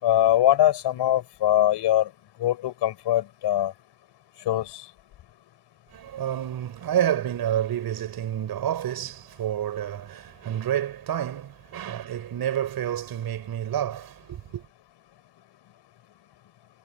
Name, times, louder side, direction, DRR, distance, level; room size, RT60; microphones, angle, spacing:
voice 1, 0.0-2.1 2.4-3.7 4.5-4.8, left 12 dB, 55° left, 6.1 m, -22 dB
voice 2, 5.9-14.7, right 10 dB, 50° right, 6.8 m, -29 dB
cardioid pair, 150°, 48 cm